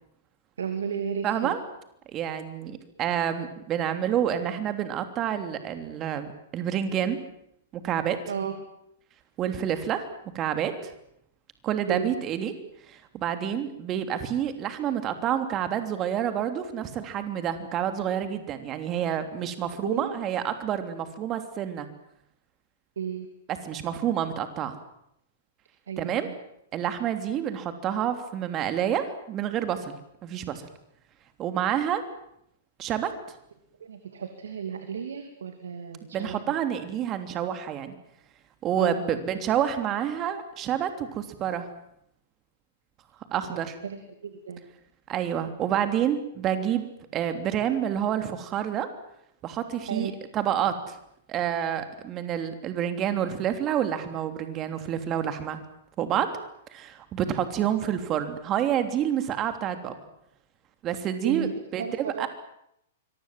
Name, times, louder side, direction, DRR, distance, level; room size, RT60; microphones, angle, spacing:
voice 1, 0.6-1.6 8.3-8.6 11.9-12.2 19.4-19.5 19.8-20.2 23.0-23.3 25.9-26.4 33.8-36.5 38.8-39.0 43.5-44.7 49.9-50.1 61.2-61.5 61.8-62.3, right 7 dB, 70° right, 7 dB, 2.8 m, -34 dB
voice 2, 1.2-1.6 2.1-7.2 7.7-8.2 9.4-10.0 10.3-10.9 11.6-12.5 12.9-21.9 23.5-24.7 26.0-26.3 26.7-30.0 30.2-30.6 31.4-32.0 32.8-33.1 36.1-37.9 38.6-41.6 43.3-43.8 45.1-46.8 47.1-48.9 49.4-51.0 51.3-55.6 56.0-56.3 56.7-59.9 60.8-62.3, right 9 dB, 30° right, 8 dB, 3.2 m, -28 dB
25.5 x 23.5 x 7.7 m, 0.77 s
figure-of-eight pair, 105°, 0 cm